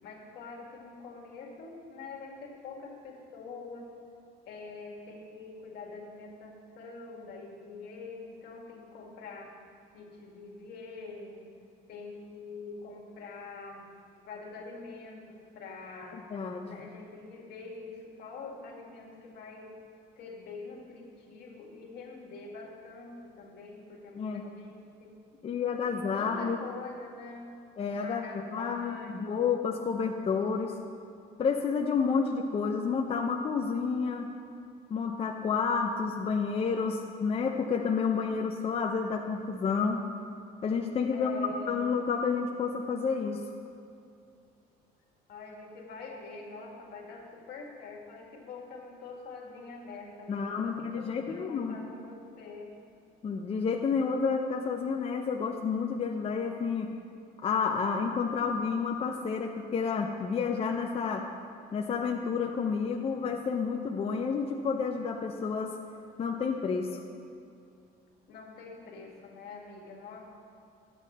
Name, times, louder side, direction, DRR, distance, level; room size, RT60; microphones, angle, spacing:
voice 1, 0.0-3.9 4.5-9.5 9.9-11.5 11.9-13.9 14.3-16.3 16.6-19.7 20.2-25.2 25.8-27.6 28.0-29.5 41.1-41.9 45.3-52.8 68.3-70.2, left 3 dB, 75° left, -1 dB, 1.9 m, -45 dB
voice 2, 16.3-16.8 24.2-24.4 25.4-26.6 27.8-30.7 31.4-34.3 34.9-40.0 40.6-43.4 50.3-51.8 53.2-56.9 57.4-61.3 61.7-65.7 66.2-67.0, left 5 dB, 35° left, 2 dB, 0.6 m, -30 dB
11.0 x 8.3 x 4.1 m, 2.5 s
cardioid pair, 110°, 17 cm